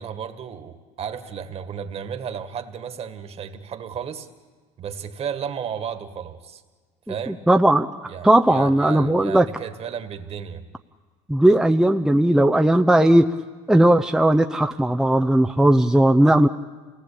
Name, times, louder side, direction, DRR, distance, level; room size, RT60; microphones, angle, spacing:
voice 1, 0.0-4.3 4.8-6.6 7.1-7.4 8.1-10.6, right 7 dB, 45° right, 8 dB, 2.0 m, -33 dB
voice 2, 7.1-7.9 8.2-9.5 11.3-13.3 13.7-16.5, right 1 dB, 5° right, 4 dB, 0.7 m, -17 dB
27.0 x 18.5 x 8.7 m, 1.4 s
supercardioid pair, 95°, 15 cm